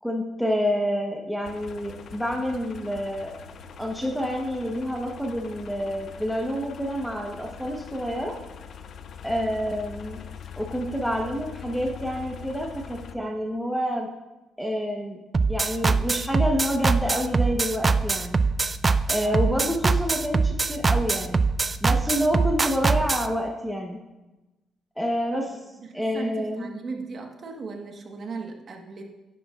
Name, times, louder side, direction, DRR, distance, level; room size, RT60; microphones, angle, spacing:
voice 1, 0.0-3.4 3.8-8.3 9.2-10.2 10.6-14.1 14.6-15.2 15.5-18.4 19.1-21.4 21.8-24.0 25.0-25.6 25.9-26.7, equal, ahead, 0 dB, 1.0 m, -28 dB
sound 1, 1.4-13.1, left 7 dB, 65° left, 0.5 m, -42 dB
sound 2, 15.3-23.3, right 4 dB, 30° right, 0.4 m, -22 dB
voice 2, 19.2-19.5 25.8-29.0, right 4 dB, 50° right, 3 dB, 1.3 m, -37 dB
9.9 x 9.2 x 2.5 m, 1.0 s
cardioid pair, 90°, 0 cm